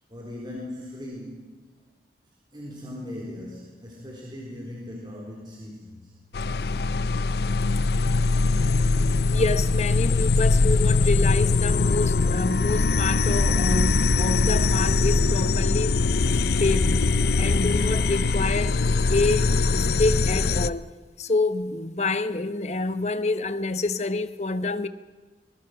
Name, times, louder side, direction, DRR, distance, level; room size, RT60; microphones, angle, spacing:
voice 1, 0.1-1.5 2.5-6.1, left 1 dB, 25° right, 3.9 m, -39 dB
sound 1, 6.3-20.7, left 3 dB, 60° left, 0.6 m, -22 dB
voice 2, 9.3-16.0 16.2-17.0 17.4-18.8 19.1-20.9 21.2-24.9, left 3 dB, 40° left, 1.0 m, -27 dB
24.0 x 21.5 x 6.0 m
head